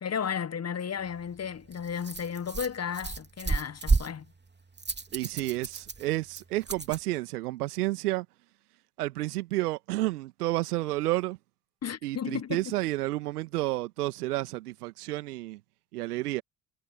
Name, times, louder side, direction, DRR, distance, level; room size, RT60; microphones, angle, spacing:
voice 1, 0.0-4.3 11.8-12.8, left 7 dB, 35° left, 1.3 m, -34 dB
Rattle, 1.0-7.0, right 4 dB, 20° right, 3.0 m, -33 dB
voice 2, 5.1-8.3 9.0-11.4 12.0-15.6 15.9-16.4, right 18 dB, 80° right, 1.8 m, -30 dB
figure-of-eight pair, 50°, 46 cm